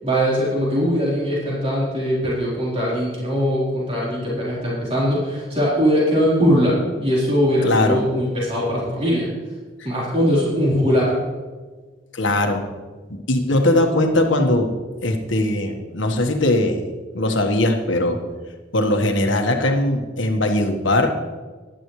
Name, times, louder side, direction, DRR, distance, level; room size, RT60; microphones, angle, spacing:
voice 1, 0.0-9.3 9.8-11.2, equal, 30° right, -7 dB, 4.0 m, -21 dB
voice 2, 7.6-8.0 12.1-12.6 13.1-14.7 15.0-16.8 17.1-18.2 18.7-21.1, left 1 dB, 80° left, 4 dB, 1.5 m, -20 dB
15.0 x 11.5 x 3.2 m, 1.3 s
head